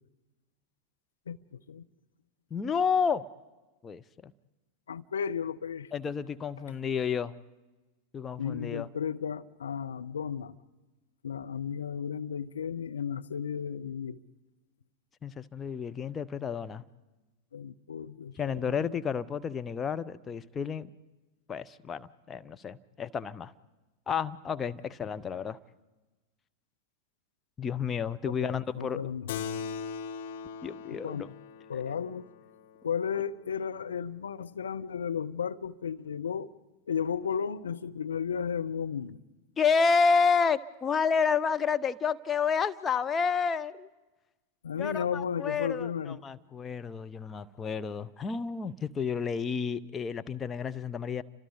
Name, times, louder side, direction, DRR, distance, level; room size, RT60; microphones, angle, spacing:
voice 1, 1.3-1.9 4.9-5.9 8.4-10.6 11.2-14.2 17.5-18.9 28.3-29.3 31.0-31.2 31.7-32.3 32.8-36.5 36.9-39.2 44.6-46.2, left 7 dB, 70° left, 9 dB, 0.9 m, -34 dB
voice 2, 2.5-3.3 3.8-4.3 5.9-7.3 8.1-8.9 15.2-16.8 18.4-20.9 21.5-23.5 24.1-25.6 27.6-29.1 30.6-31.3 39.6-43.9 44.8-51.2, left 5 dB, 20° left, 11 dB, 0.8 m, -30 dB
Keyboard (musical), 29.3-34.2, left 6 dB, 55° left, 1.3 m, -41 dB
30.0 x 25.5 x 5.1 m, 1.2 s
figure-of-eight pair, 90°, 0 cm